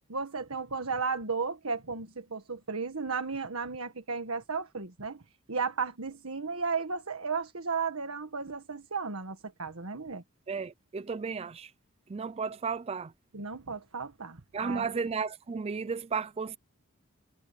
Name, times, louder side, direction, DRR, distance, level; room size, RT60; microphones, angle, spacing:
voice 1, 0.1-5.2 5.5-10.2 13.3-15.0, right 5 dB, 75° right, 1.6 m, -34 dB
voice 2, 10.5-11.7 12.1-13.1 14.5-16.6, right 5 dB, 30° right, 0.4 m, -33 dB
head